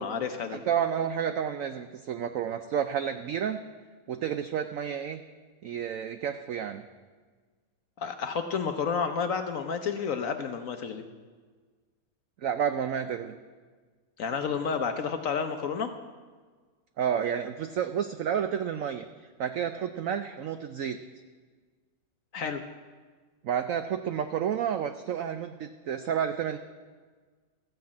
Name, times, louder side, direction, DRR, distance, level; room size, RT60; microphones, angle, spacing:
voice 1, 0.0-0.6 8.0-11.0 14.2-15.9 22.3-22.6, left 6 dB, 65° left, 7 dB, 0.9 m, -30 dB
voice 2, 0.5-3.6 4.1-5.2 5.6-6.9 12.4-13.4 17.0-19.1 19.4-21.0 23.4-26.6, right 8 dB, 90° right, 9 dB, 0.7 m, -30 dB
14.0 x 6.0 x 8.5 m, 1.5 s
omnidirectional pair, 2.0 m